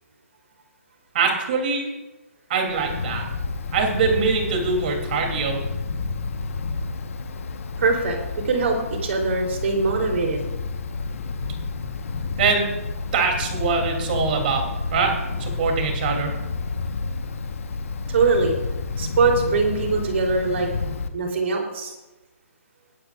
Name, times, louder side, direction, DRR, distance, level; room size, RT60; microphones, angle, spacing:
voice 1, 1.1-1.9 2.5-3.2 3.7-5.6 12.4-12.7 13.1-14.6 14.9-15.1 15.4-16.3, right 5 dB, 40° right, 2 dB, 3.0 m, -23 dB
Wind, 2.7-21.1, left 4 dB, 70° left, 1.2 m, -30 dB
voice 2, 7.8-8.2 8.4-10.5 18.1-18.5 19.0-20.7 21.1-21.9, right 4 dB, 55° right, 2 dB, 3.4 m, -22 dB
21.0 x 11.0 x 2.5 m, 1.1 s
hypercardioid pair, 160°, 8 cm